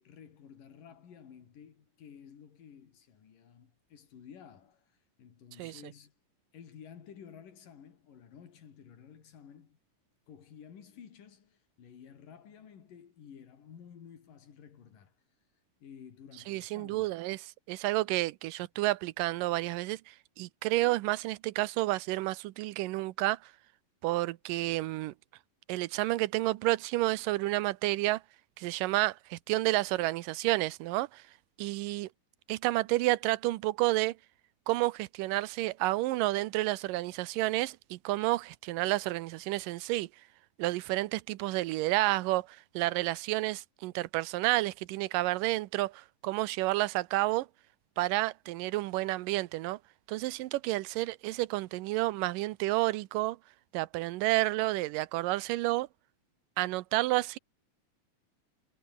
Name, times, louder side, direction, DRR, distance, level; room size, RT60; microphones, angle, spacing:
voice 1, 0.0-6.1 6.5-9.8 10.3-15.1 15.8-17.1, left 8 dB, 80° left, 4.6 m, -53 dB
voice 2, 16.5-23.5 24.0-25.1 25.7-28.2 28.6-31.2 31.6-32.1 32.5-34.2 34.7-40.1 40.6-47.5 48.0-49.8 50.1-53.4 53.7-55.9 56.6-57.4, right 18 dB, 85° right, 2.4 m, -30 dB
omnidirectional pair, 3.8 m